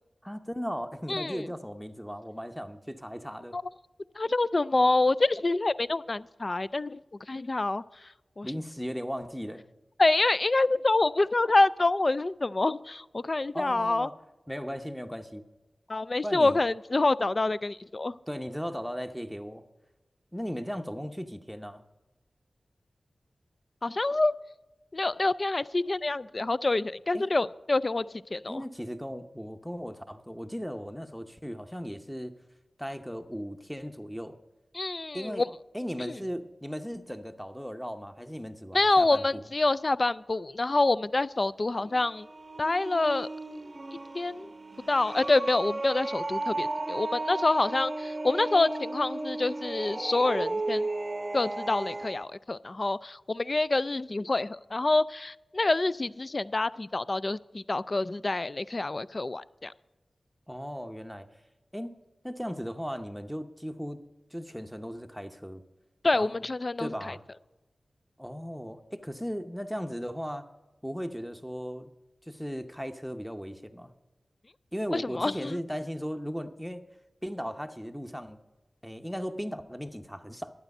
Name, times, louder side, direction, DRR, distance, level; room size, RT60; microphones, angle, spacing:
voice 1, 0.2-3.6 8.4-9.6 13.5-14.2 14.5-15.4 16.2-16.6 18.3-19.6 20.3-21.8 27.1-27.2 28.5-32.3 32.8-34.4 35.1-35.4 35.7-39.4 60.5-61.3 61.7-62.0 62.2-64.0 64.3-65.6 66.1-66.3 66.8-67.2 68.2-70.5 70.8-71.9 72.3-73.9 74.7-76.8 77.2-78.4 78.8-80.5, equal, ahead, 7 dB, 0.8 m, -37 dB
voice 2, 1.1-1.4 3.5-3.6 4.2-7.0 7.3-7.8 8.4-8.5 10.0-14.1 15.9-18.2 23.8-24.3 24.9-28.6 34.7-35.5 36.0-36.2 38.7-42.3 42.6-43.3 44.1-44.5 44.9-50.9 51.3-59.7 66.0-67.2 74.9-75.6, left 2 dB, 40° left, 17 dB, 0.3 m, -27 dB
sound 1, 41.7-52.2, right 2 dB, 40° right, 0.7 m, -35 dB
11.5 x 8.9 x 5.4 m, 1.1 s
wide cardioid pair, 75°, 0 cm